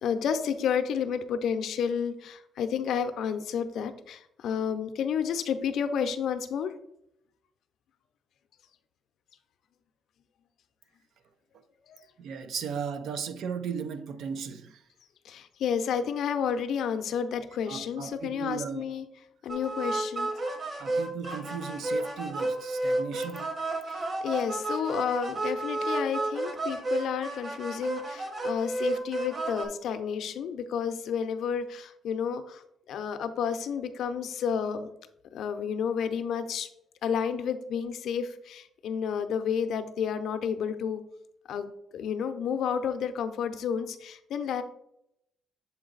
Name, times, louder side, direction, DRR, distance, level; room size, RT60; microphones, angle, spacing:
voice 1, 0.0-6.7 11.9-12.0 15.2-19.0 19.4-20.3 23.9-32.6 32.9-34.9 35.3-36.7 37.0-41.0 41.5-44.6, left 7 dB, 75° left, 0.6 m, -31 dB
voice 2, 12.2-14.8 17.7-18.9 20.8-23.5, right 6 dB, 75° right, 0.6 m, -36 dB
sound 1, 19.5-29.7, right 2 dB, 35° right, 1.2 m, -31 dB
7.1 x 3.9 x 3.9 m
cardioid pair, 90°, 0 cm